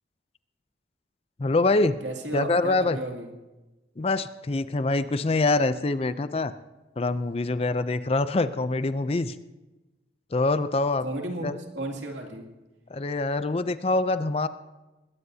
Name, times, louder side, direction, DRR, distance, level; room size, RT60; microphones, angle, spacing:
voice 1, 1.4-2.0 2.3-3.0 4.0-6.5 7.0-9.3 10.3-11.0 11.4-11.5 12.9-14.5, left 2 dB, 35° left, 13 dB, 0.4 m, -25 dB
voice 2, 2.0-3.3 11.0-12.5, right 1 dB, 90° right, 2 dB, 2.5 m, -34 dB
20.5 x 17.5 x 2.8 m, 1.1 s
head